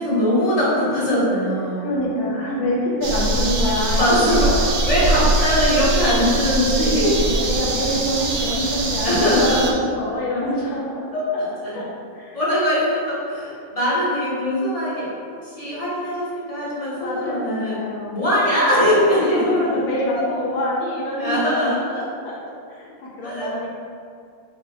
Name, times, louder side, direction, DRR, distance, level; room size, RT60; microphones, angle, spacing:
voice 1, 0.0-1.8 3.9-4.6 4.9-7.4 9.0-9.7 11.1-11.3 11.6-11.8 12.3-17.8 18.1-19.8 20.2-20.3 21.2-22.1 23.2-23.5, equal, 30° left, -9 dB, 0.8 m, -21 dB
voice 2, 1.8-4.7 5.0-5.2 5.6-5.8 6.9-9.1 9.4-11.5 11.7-12.4 16.9-18.2 19.3-22.4 22.7-23.7, left 1 dB, 85° left, -4 dB, 1.6 m, -26 dB
sound 1, 3.0-9.7, right 2 dB, 70° right, 0.8 m, -22 dB
5.0 x 2.2 x 3.9 m, 2.2 s
omnidirectional pair, 2.0 m